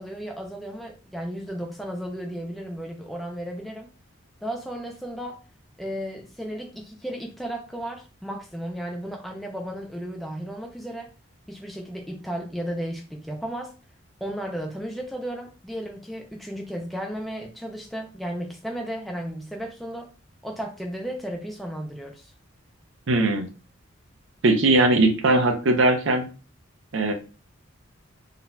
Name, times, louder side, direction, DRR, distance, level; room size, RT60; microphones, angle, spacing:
voice 1, 0.0-3.9 4.4-5.4 5.8-11.1 11.5-13.7 14.2-20.1 20.4-22.3, equal, ahead, 1 dB, 0.4 m, -34 dB
voice 2, 23.1-23.5 24.4-26.3 26.9-27.1, right 2 dB, 65° right, 4 dB, 0.6 m, -19 dB
3.9 x 2.6 x 2.2 m, 0.33 s
head